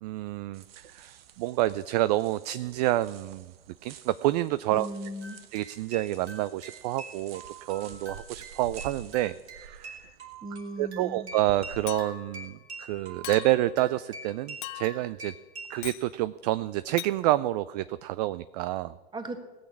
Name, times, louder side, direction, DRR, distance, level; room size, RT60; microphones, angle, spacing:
voice 1, 0.0-3.5 3.8-4.9 5.5-10.1 10.8-15.3 15.7-18.9, right 16 dB, 40° right, 16 dB, 0.4 m, -28 dB
sound 1, 0.5-11.8, right 7 dB, 65° right, 1.0 m, -50 dB
voice 2, 4.7-5.4 10.4-11.3 19.1-19.4, right 1 dB, 15° right, 7 dB, 1.6 m, -37 dB
sound 2, 5.2-15.8, right 3 dB, 85° right, 3.1 m, -45 dB
Chink clink, 11.9-12.4 13.2-13.7 14.6-15.1 15.8-16.1 17.0-17.2, left 18 dB, 50° left, 0.5 m, -39 dB
18.0 x 6.4 x 8.4 m, 1.2 s
hypercardioid pair, 105°, 32 cm